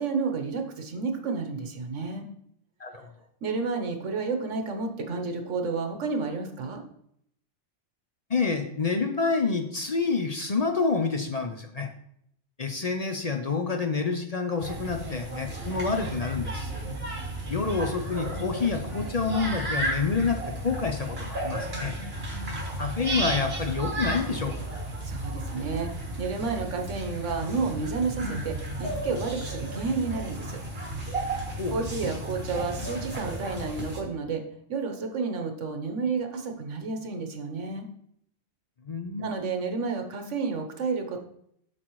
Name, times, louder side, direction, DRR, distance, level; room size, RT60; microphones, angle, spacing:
voice 1, 0.0-2.3 3.4-6.8 25.0-30.6 31.7-34.4 34.7-37.9 39.2-41.2, right 4 dB, 75° right, 5 dB, 1.3 m, -31 dB
voice 2, 8.3-11.9 12.6-16.7 17.5-22.0 22.8-24.5 31.6-31.8 38.8-39.3, left 4 dB, 40° left, 5 dB, 0.6 m, -28 dB
sound 1, 14.6-34.0, right 1 dB, 55° right, 1.8 m, -33 dB
7.9 x 6.2 x 3.1 m, 0.71 s
omnidirectional pair, 1.3 m